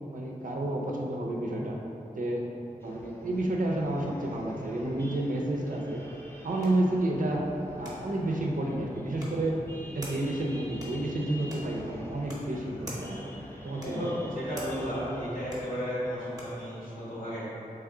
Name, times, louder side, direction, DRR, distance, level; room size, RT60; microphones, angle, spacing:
voice 1, 0.1-1.8 2.1-2.4 2.8-6.0 6.4-7.5 7.8-9.6 9.9-14.1, right 1 dB, 65° right, -1 dB, 0.5 m, -30 dB
sound 1, 2.8-15.6, equal, 15° left, 0.5 m, -46 dB
sound 2, 5.9-16.7, equal, 25° right, 1.0 m, -49 dB
voice 2, 13.8-17.5, equal, 70° left, -9 dB, 1.4 m, -33 dB
3.4 x 3.3 x 3.7 m, 2.8 s
wide cardioid pair, 75°, 15 cm